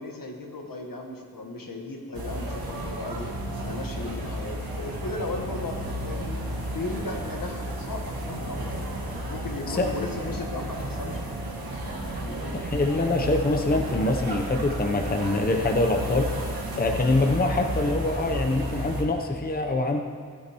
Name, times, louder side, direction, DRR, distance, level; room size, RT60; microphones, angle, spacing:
voice 1, 0.0-6.4 6.7-8.8 9.2-11.2 12.2-12.4 16.7-17.0 17.9-18.1, left 2 dB, 70° left, 2 dB, 1.4 m, -36 dB
sound 1, 2.1-19.0, right 1 dB, 85° right, 1.5 m, -32 dB
voice 2, 9.7-10.1 12.5-16.3 16.8-20.0, left 2 dB, 25° left, 4 dB, 0.7 m, -24 dB
16.0 x 9.4 x 3.0 m, 2.3 s
wide cardioid pair, 70°, 35 cm